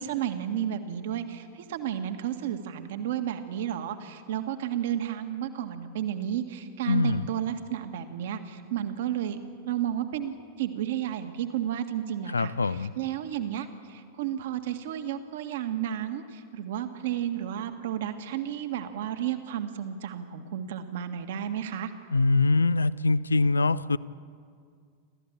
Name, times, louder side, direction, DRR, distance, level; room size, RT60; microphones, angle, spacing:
voice 1, 0.0-9.4 9.7-21.9, right 10 dB, 55° right, 7 dB, 1.8 m, -32 dB
voice 2, 6.8-7.2 12.3-12.9 22.1-24.0, left 3 dB, 75° left, 19 dB, 0.5 m, -23 dB
28.0 x 14.0 x 8.8 m, 2.1 s
figure-of-eight pair, 90°, 0 cm